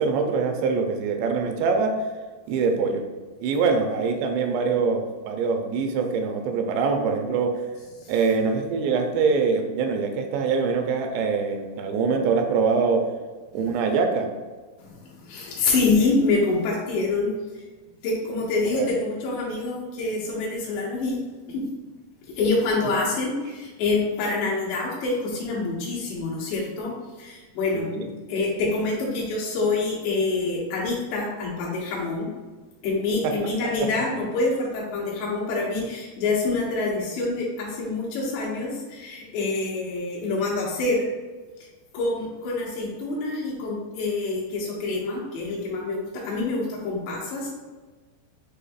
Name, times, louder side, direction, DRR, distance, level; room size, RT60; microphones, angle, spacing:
voice 1, 0.0-1.9 2.5-3.0 3.4-7.5 8.1-13.1 13.5-14.3 18.7-19.0 27.7-28.1 33.2-33.3 33.6-33.9, right 5 dB, 85° right, 4 dB, 2.7 m, -24 dB
voice 2, 14.8-17.3 18.0-21.2 21.5-21.7 22.3-27.9 28.3-32.3 32.8-41.1 41.9-47.5, left 3 dB, 85° left, -5 dB, 3.4 m, -26 dB
7.9 x 2.7 x 2.4 m, 1.3 s
omnidirectional pair, 4.8 m